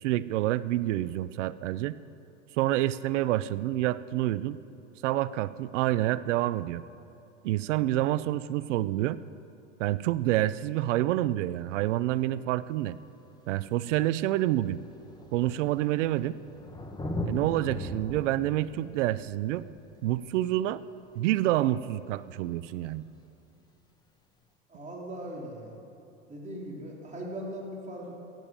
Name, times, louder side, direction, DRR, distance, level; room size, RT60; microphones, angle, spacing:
voice 1, 0.0-2.0 2.6-4.6 5.0-6.8 7.4-9.2 9.8-13.0 13.5-14.8 15.3-16.4 17.2-19.6 20.0-20.8 21.2-23.1, right 15 dB, 70° right, 17 dB, 0.6 m, -28 dB
Thunder, 12.7-12.8 13.7-13.8 14.0-21.3 23.0-23.1, left 1 dB, 10° left, 1.6 m, -40 dB
voice 2, 24.7-25.7 26.3-28.1, right 1 dB, 20° right, -3 dB, 3.5 m, -39 dB
15.0 x 9.2 x 7.7 m, 2.8 s
hypercardioid pair, 100°, 37 cm